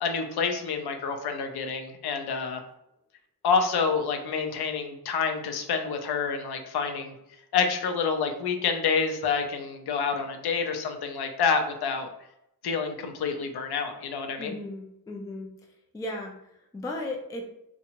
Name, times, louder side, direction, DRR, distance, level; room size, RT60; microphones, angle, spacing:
voice 1, 0.0-2.6 3.4-7.1 7.5-12.1 12.6-14.5, left 5 dB, 70° left, 5 dB, 0.6 m, -28 dB
voice 2, 14.4-15.5 15.9-17.4, left 1 dB, 10° left, 1 dB, 0.3 m, -36 dB
2.7 x 2.2 x 2.8 m, 0.79 s
cardioid pair, 80°, 40 cm